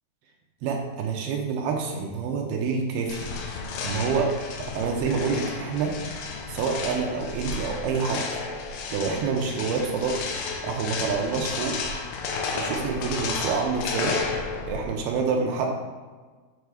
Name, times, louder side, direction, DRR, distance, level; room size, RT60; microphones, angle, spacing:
voice 1, 0.6-4.3 4.6-6.0 6.5-8.3 8.9-10.3 10.6-11.8 12.5-14.2 14.6-15.7, right 5 dB, 80° right, 1 dB, 2.5 m, -27 dB
sound 1, 3.1-15.0, left 4 dB, 90° left, 2.9 m, -32 dB
8.2 x 4.6 x 4.8 m, 1.4 s
omnidirectional pair, 4.7 m